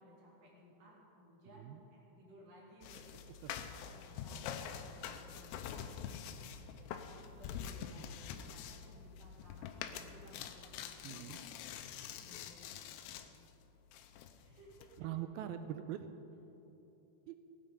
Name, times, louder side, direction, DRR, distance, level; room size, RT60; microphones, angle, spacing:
voice 1, 0.0-3.1 3.9-6.3 6.6-6.9 7.2-8.1 8.4-11.2 12.2-13.3 14.3-14.9, equal, 55° right, -6 dB, 4.7 m, -60 dB
voice 2, 1.5-1.8 3.4-3.5 11.0-11.4 15.0-16.1 17.3-17.4, right 11 dB, 85° right, 9 dB, 2.2 m, -43 dB
sound 1, 2.8-13.5 13.9-15.0, left 8 dB, 85° left, 2.8 m, -46 dB
19.5 x 9.4 x 5.5 m, 3.0 s
omnidirectional pair, 4.8 m